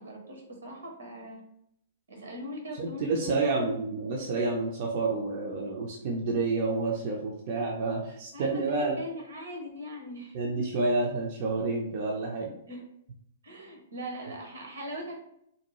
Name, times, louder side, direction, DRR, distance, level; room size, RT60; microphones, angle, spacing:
voice 1, 0.0-1.4 2.1-3.8 8.3-10.4 12.7-12.8 13.4-15.2, equal, 80° right, 1 dB, 0.8 m, -40 dB
voice 2, 2.8-9.0 10.3-12.5, right 3 dB, 50° right, -1 dB, 0.5 m, -29 dB
2.6 x 2.2 x 3.0 m, 0.74 s
hypercardioid pair, 115°, 0 cm